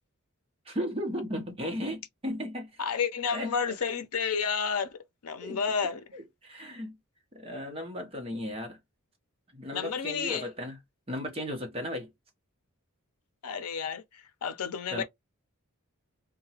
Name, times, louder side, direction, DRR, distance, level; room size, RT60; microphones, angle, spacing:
voice 1, 0.7-2.8 3.3-3.5 5.4-5.6 6.1-7.0 7.3-8.8 9.5-10.8 11.1-12.1 14.9-15.0, equal, 25° right, 0.8 m, -35 dB
voice 2, 2.8-5.0 5.2-6.0 9.7-10.4 13.4-15.0, left 6 dB, 80° left, 0.6 m, -31 dB
2.8 x 2.2 x 2.7 m
head